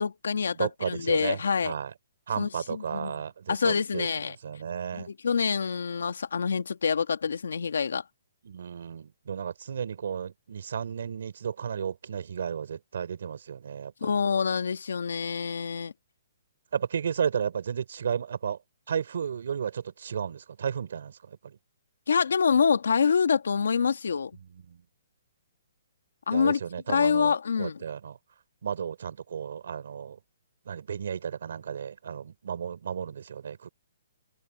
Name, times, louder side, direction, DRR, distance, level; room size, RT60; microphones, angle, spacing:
voice 1, 0.0-1.7 2.4-3.2 3.5-4.4 4.9-8.0 14.0-15.9 22.1-24.3 26.3-26.6 26.9-27.8, left 6 dB, 85° left, 1.9 m, -26 dB
voice 2, 0.5-1.4 1.6-1.9 2.3-4.1 4.4-5.1 8.4-14.1 16.7-18.6 18.9-21.2 21.4-21.6 24.7-24.8 26.3-27.3 27.6-28.2 28.6-30.2 30.7-33.7, right 7 dB, 60° right, 4.1 m, -33 dB
hypercardioid pair, 170°, 0 cm